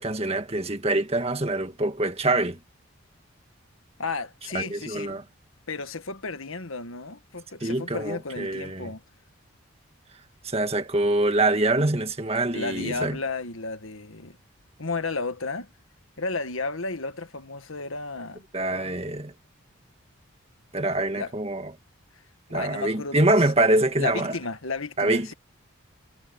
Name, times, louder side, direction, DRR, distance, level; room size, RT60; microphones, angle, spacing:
voice 1, 0.0-2.6 4.5-5.2 7.6-8.9 10.4-13.2 18.5-19.3 20.7-21.7 22.5-24.4 25.0-25.3, right 2 dB, 30° right, 1.8 m, -25 dB
voice 2, 4.0-5.2 5.7-9.0 12.5-14.4 14.8-15.7 16.2-18.4 21.1-21.3 22.5-23.4 24.0-25.3, left 3 dB, 75° left, 1.7 m, -33 dB
head